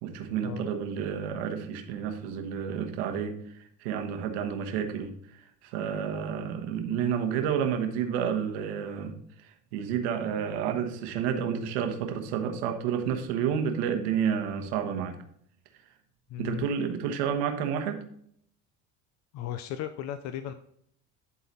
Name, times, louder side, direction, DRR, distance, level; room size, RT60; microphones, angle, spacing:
voice 1, 0.0-3.3 3.8-5.1 5.6-9.1 9.4-15.2 16.4-18.0, right 8 dB, 90° right, 5 dB, 1.2 m, -30 dB
voice 2, 16.3-16.7 19.3-20.5, left 11 dB, 55° left, 10 dB, 0.6 m, -36 dB
11.0 x 4.0 x 4.1 m, 0.67 s
supercardioid pair, 115°, 32 cm